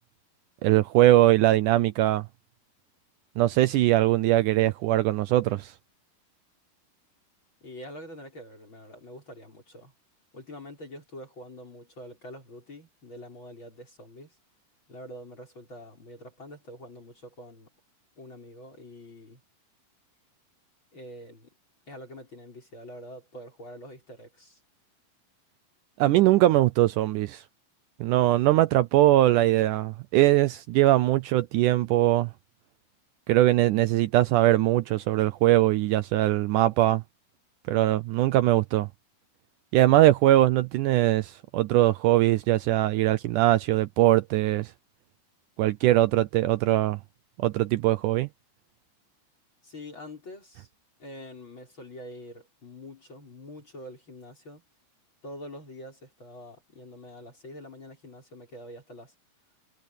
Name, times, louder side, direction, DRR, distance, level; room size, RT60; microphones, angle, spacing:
voice 1, 0.6-2.3 3.4-5.7 26.0-27.4 28.0-32.3 33.3-37.0 37.7-38.9 39.7-44.7 45.6-47.0 47.4-48.3, right 15 dB, 80° right, 1.9 m, -21 dB
voice 2, 7.6-9.9 10.3-14.3 14.9-17.7 18.2-19.4 20.9-21.5 21.9-24.6 49.6-50.7 51.0-54.6 55.2-59.1, left 1 dB, 30° left, 6.7 m, -45 dB
omnidirectional pair, 4.2 m